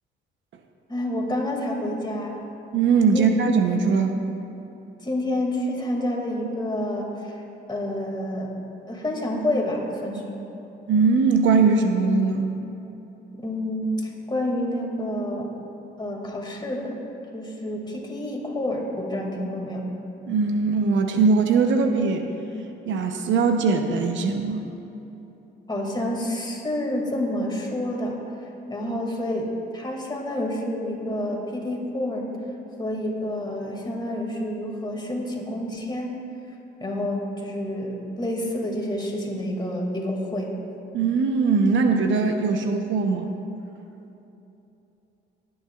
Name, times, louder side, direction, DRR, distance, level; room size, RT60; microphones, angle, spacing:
voice 1, 0.9-2.4 3.1-3.3 5.0-7.4 7.7-8.5 8.9-10.4 13.3-15.5 16.0-16.9 17.3-19.9 25.7-28.2 28.7-32.3 32.8-36.2 36.8-40.5, left 1 dB, 20° left, -1 dB, 2.3 m, -28 dB
voice 2, 2.7-4.2 10.9-12.5 20.3-22.3 22.9-24.6 40.9-43.3, right 4 dB, 70° right, 5 dB, 0.8 m, -20 dB
19.0 x 9.6 x 2.4 m, 3.0 s
cardioid pair, 90°, 20 cm